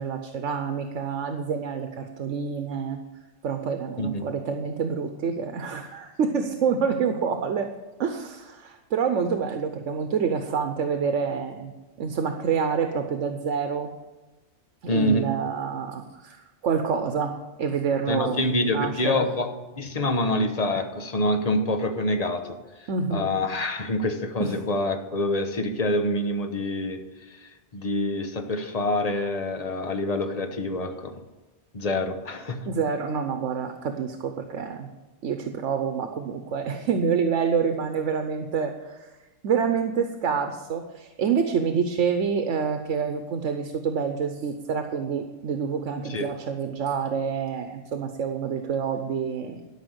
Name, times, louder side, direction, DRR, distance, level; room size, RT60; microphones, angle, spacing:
voice 1, 0.0-3.0 3.4-7.7 8.0-11.7 12.0-13.9 14.8-19.3 22.9-23.3 24.4-24.5 32.7-34.9 35.2-39.1 39.4-49.6, right 6 dB, 85° right, 6 dB, 1.2 m, -27 dB
voice 2, 14.9-15.3 18.1-19.5 19.8-22.6 23.1-27.0 27.3-31.2 31.7-32.7 46.1-46.3, left 1 dB, 35° left, 6 dB, 1.0 m, -26 dB
13.0 x 5.7 x 8.0 m, 1.2 s
omnidirectional pair, 1.2 m